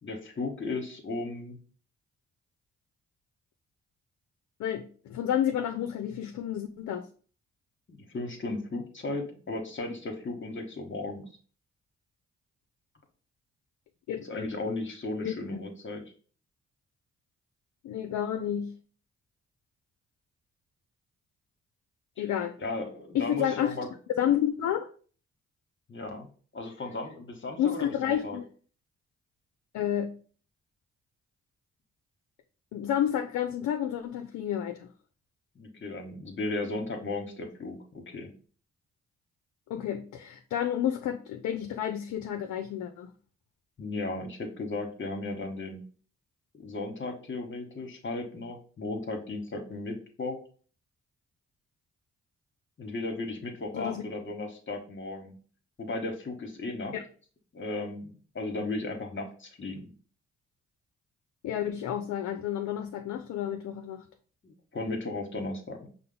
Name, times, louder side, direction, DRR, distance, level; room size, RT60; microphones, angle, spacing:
voice 1, 0.0-1.6 7.9-11.3 14.3-16.0 22.6-23.9 25.9-26.3 26.5-28.4 35.6-38.3 43.8-45.8 46.5-50.4 52.8-55.4 55.8-56.9 57.5-59.9 64.4-65.9, left 2 dB, 40° left, 3 dB, 1.1 m, -35 dB
voice 2, 4.6-7.1 14.1-14.3 15.2-15.3 17.8-18.8 22.2-22.6 23.1-23.8 24.2-24.9 27.6-28.5 29.7-30.2 32.7-34.9 39.7-43.1 53.7-54.0 56.9-57.0 61.4-64.0, left 10 dB, 70° left, 6 dB, 0.5 m, -30 dB
5.4 x 2.0 x 3.8 m, 0.41 s
supercardioid pair, 45°, 30 cm